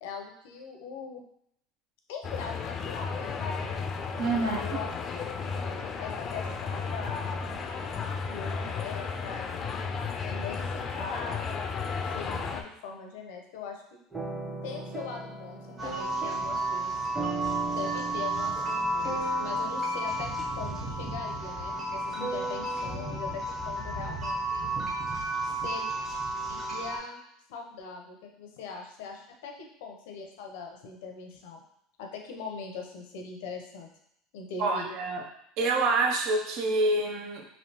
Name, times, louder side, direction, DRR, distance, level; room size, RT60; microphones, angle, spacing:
voice 1, 0.0-1.2 2.1-3.9 4.3-5.3 6.0-7.4 8.3-9.8 10.3-11.4 12.0-14.0 14.6-17.1 17.7-18.6 18.9-20.3 20.6-24.7 25.4-25.9 26.5-27.2 27.5-31.6 32.0-33.9 34.3-34.9, left 5 dB, 80° left, 2 dB, 0.6 m, -41 dB
sound 1, 2.2-12.6, left 5 dB, 40° left, 0.4 m, -34 dB
voice 2, 4.2-4.8 34.6-35.3 35.6-37.5, right 2 dB, 65° right, 3 dB, 0.6 m, -27 dB
sound 2, 14.1-23.1, right 3 dB, 10° right, 0.8 m, -38 dB
sound 3, 15.8-27.0, right 1 dB, 30° right, 1.3 m, -32 dB
3.2 x 2.7 x 2.9 m, 0.74 s
supercardioid pair, 95°, 0 cm